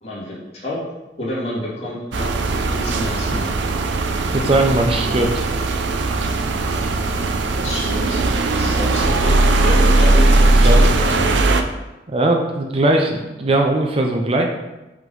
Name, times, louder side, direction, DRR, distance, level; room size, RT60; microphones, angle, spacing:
voice 1, 0.0-0.8 1.2-2.3 2.7-3.5 7.5-8.2 8.5-11.5, left 1 dB, 35° left, -6 dB, 2.0 m, -28 dB
sound 1, 2.1-11.6, right 2 dB, 90° right, 0.5 m, -18 dB
voice 2, 4.3-5.5 10.6-10.8 12.1-14.5, right 1 dB, 30° right, 1 dB, 0.5 m, -19 dB
5.8 x 3.7 x 5.4 m, 1.0 s
head